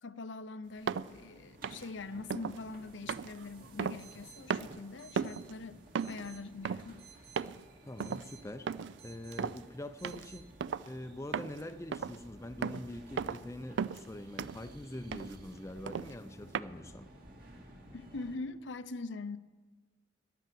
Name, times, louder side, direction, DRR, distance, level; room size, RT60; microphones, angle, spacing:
voice 1, 0.0-7.0 17.9-19.4, left 3 dB, 70° left, 0.6 m, -43 dB
sound 1, 0.8-18.4, right 1 dB, 50° right, 2.0 m, -55 dB
sound 2, 0.9-1.1 1.6-1.9 2.3-2.6 3.1-4.2 4.5-4.8 5.2-5.5 5.9-6.2 6.6-6.9 7.4-7.6 8.0-8.3 8.7-9.0 9.3-9.6 10.0-10.3 10.6-10.9 11.3-11.6 11.9-12.2 12.6-12.9 13.2-13.5 13.8-14.1 14.4-14.7 15.1-15.4 15.9-16.1 16.5-16.6, right 6 dB, 65° right, 0.4 m, -36 dB
sound 3, 3.7-10.4, right 8 dB, 85° right, 3.2 m, -59 dB
voice 2, 7.8-8.7 9.0-10.5 10.9-17.1, left 1 dB, 15° left, 0.5 m, -44 dB
13.5 x 10.0 x 7.6 m
head